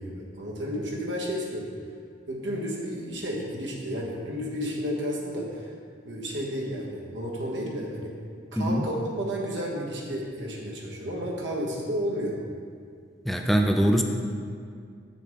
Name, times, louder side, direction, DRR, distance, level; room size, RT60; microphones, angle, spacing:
voice 1, 0.0-1.7 2.3-5.7 6.0-8.1 8.5-12.4, equal, 85° right, -2 dB, 1.4 m, -32 dB
voice 2, 13.3-14.0, equal, ahead, 3 dB, 0.3 m, -22 dB
7.5 x 6.9 x 3.6 m, 2.2 s
head